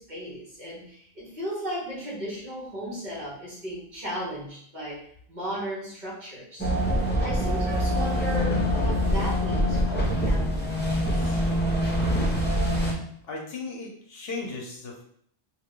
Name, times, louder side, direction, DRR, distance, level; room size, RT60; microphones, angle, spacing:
voice 1, 0.0-11.4, equal, 45° right, -6 dB, 1.4 m, -36 dB
sound 1, 6.6-12.9, equal, 10° left, 0.8 m, -24 dB
voice 2, 13.3-15.0, left 3 dB, 65° left, 0 dB, 0.9 m, -36 dB
3.2 x 2.5 x 3.7 m, 0.64 s
omnidirectional pair, 1.1 m